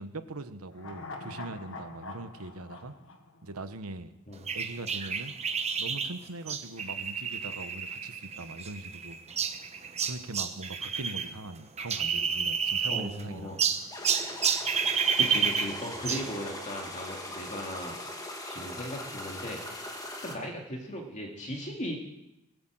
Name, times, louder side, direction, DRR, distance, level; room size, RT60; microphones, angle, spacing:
voice 1, 0.0-2.9 3.4-4.1 4.5-5.3 5.8-9.2 10.0-13.5, right 2 dB, 80° right, 11 dB, 1.1 m, -41 dB
sound 1, 0.7-4.1 4.4-4.5, left 3 dB, 60° left, 1.6 m, -44 dB
sound 2, 4.5-11.3 11.6-13.2 13.6-16.3, right 6 dB, 30° right, 1.0 m, -30 dB
voice 2, 12.9-13.6 15.2-18.0 18.5-19.9 20.2-22.0, equal, 35° left, 1 dB, 2.5 m, -37 dB
sound 3, 13.9-20.4, left 1 dB, 15° left, 2.1 m, -40 dB
21.0 x 8.6 x 7.7 m, 0.87 s
head